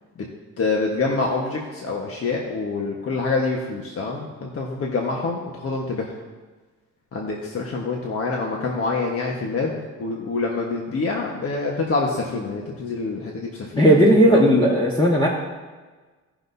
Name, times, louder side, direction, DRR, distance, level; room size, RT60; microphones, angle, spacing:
voice 1, 0.6-6.1 7.1-14.0 14.2-14.5, left 3 dB, 50° left, -1 dB, 1.4 m, -26 dB
voice 2, 13.8-15.3, equal, 15° left, -3 dB, 1.5 m, -15 dB
17.5 x 6.1 x 2.8 m, 1.3 s
cardioid pair, 90°, 30 cm